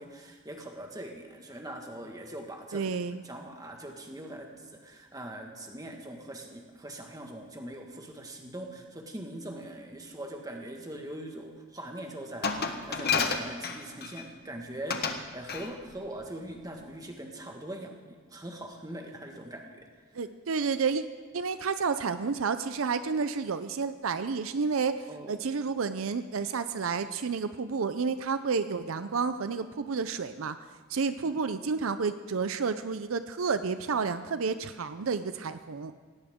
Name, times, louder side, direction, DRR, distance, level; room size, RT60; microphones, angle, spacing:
voice 1, 0.0-2.9 3.2-19.9 25.1-25.4 31.2-31.4, right 1 dB, 15° right, 2 dB, 1.6 m, -42 dB
voice 2, 2.7-3.2 20.1-21.0 21.3-30.6 30.9-35.9, right 5 dB, 75° right, 11 dB, 0.5 m, -30 dB
Glass, 12.4-14.3 14.9-15.2 15.5-15.7, left 5 dB, 45° left, 1.1 m, -30 dB
18.0 x 17.0 x 3.7 m, 1.5 s
head